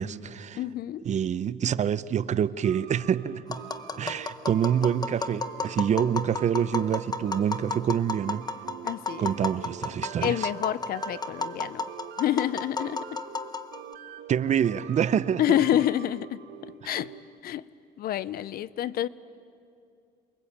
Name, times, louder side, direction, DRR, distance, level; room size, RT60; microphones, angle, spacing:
voice 1, 0.0-0.6 1.0-3.6 4.0-8.4 9.2-10.5 14.3-15.4 16.8-16.9, right 8 dB, 45° right, 0.7 m, -26 dB
voice 2, 0.6-1.0 8.8-9.3 10.2-11.8 12.2-13.1 15.4-17.1 17.4-17.6 18.0-19.1, left 12 dB, 60° left, 0.7 m, -28 dB
sound 1, 2.6-17.4, right 9 dB, 80° right, 1.4 m, -45 dB
Tap, 3.5-13.9, left 3 dB, 25° left, 1.0 m, -33 dB
28.5 x 22.5 x 8.7 m
cardioid pair, 110°, 17 cm